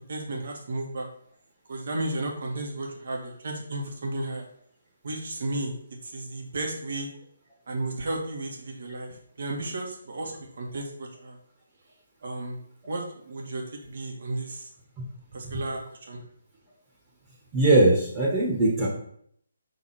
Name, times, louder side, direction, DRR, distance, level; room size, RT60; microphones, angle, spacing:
voice 1, 0.1-1.1 1.7-4.5 5.0-5.7 6.0-7.1 7.7-11.4 12.2-12.6 12.8-14.7 15.3-16.2, right 2 dB, 60° right, 0 dB, 2.0 m, -33 dB
voice 2, 17.5-18.9, right 2 dB, 20° right, -6 dB, 1.7 m, -20 dB
6.2 x 4.0 x 4.4 m, 0.67 s
hypercardioid pair, 155°, 0 cm